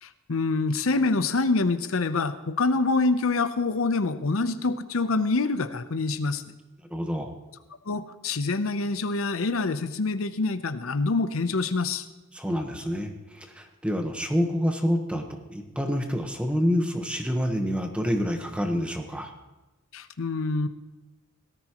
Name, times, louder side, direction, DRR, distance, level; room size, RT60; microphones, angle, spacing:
voice 1, 0.0-6.4 7.9-12.1 19.9-20.7, left 3 dB, 85° left, 11 dB, 0.8 m, -26 dB
voice 2, 6.9-7.3 12.3-19.3, equal, 5° right, 4 dB, 1.2 m, -27 dB
18.0 x 13.5 x 3.0 m, 1.1 s
head